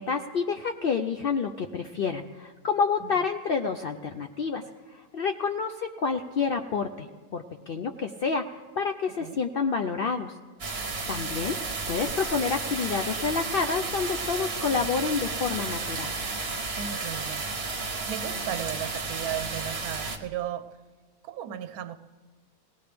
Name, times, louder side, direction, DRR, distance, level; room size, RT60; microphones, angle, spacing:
voice 1, 0.0-4.6 4.9-7.1 7.3-10.3 11.1-11.6 11.9-16.1, left 5 dB, 85° left, 0.5 m, -28 dB
voice 2, 9.1-9.4 16.8-17.5 18.1-20.8 21.2-22.0, right 10 dB, 70° right, 1.1 m, -35 dB
sound 1, 10.6-20.2, right 3 dB, 45° right, 1.2 m, -32 dB
20.0 x 17.0 x 3.4 m
omnidirectional pair, 1.6 m